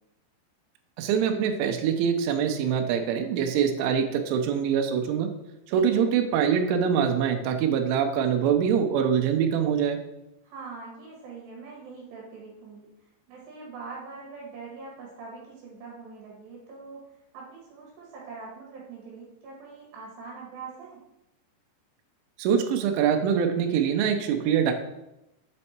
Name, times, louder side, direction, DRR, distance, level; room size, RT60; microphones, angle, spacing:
voice 1, 1.0-5.3 5.7-10.0 22.4-24.7, right 7 dB, 85° right, 5 dB, 3.2 m, -24 dB
voice 2, 5.7-6.1 10.4-12.9 13.3-17.0 17.3-21.0, right 4 dB, 65° right, -4 dB, 3.6 m, -43 dB
7.5 x 4.4 x 4.3 m, 0.89 s
omnidirectional pair, 5.4 m